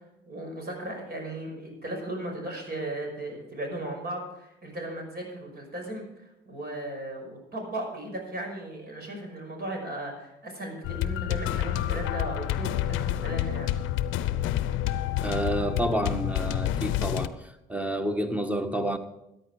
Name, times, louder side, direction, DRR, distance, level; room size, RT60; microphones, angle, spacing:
voice 1, 0.3-13.7, right 1 dB, 50° right, 5.8 m, -36 dB
sound 1, 10.8-17.3, left 12 dB, 75° left, 0.6 m, -28 dB
voice 2, 15.2-19.0, right 1 dB, 5° right, 1.5 m, -29 dB
14.0 x 9.6 x 5.0 m
hypercardioid pair, 55°, 21 cm